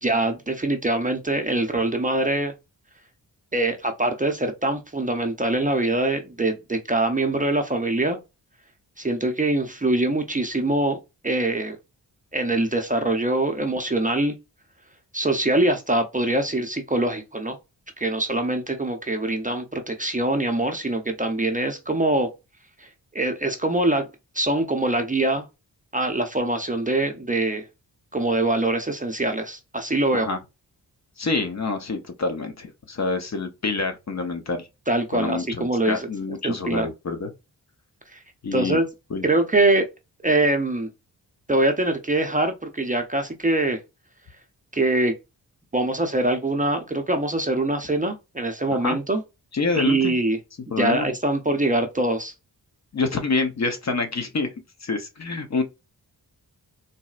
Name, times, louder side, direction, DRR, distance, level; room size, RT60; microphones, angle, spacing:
voice 1, 0.0-2.5 3.5-8.2 9.0-11.0 11.2-11.8 12.3-14.4 15.1-17.6 18.0-22.3 22.8-24.1 24.3-25.5 25.9-27.6 28.1-30.3 34.9-36.1 36.4-36.9 38.1-38.2 38.5-38.9 39.2-39.9 40.2-40.9 41.5-43.8 44.7-45.1 45.7-49.2 49.7-50.4 50.7-52.3, right 2 dB, 20° right, 0.6 m, -23 dB
voice 2, 31.2-34.7 35.1-37.3 38.4-38.8 39.1-39.2 48.8-49.0 49.5-50.1 50.7-51.1 52.9-54.5 54.8-55.6, left 3 dB, 40° left, 0.8 m, -27 dB
3.9 x 2.0 x 2.4 m
supercardioid pair, 45°, 42 cm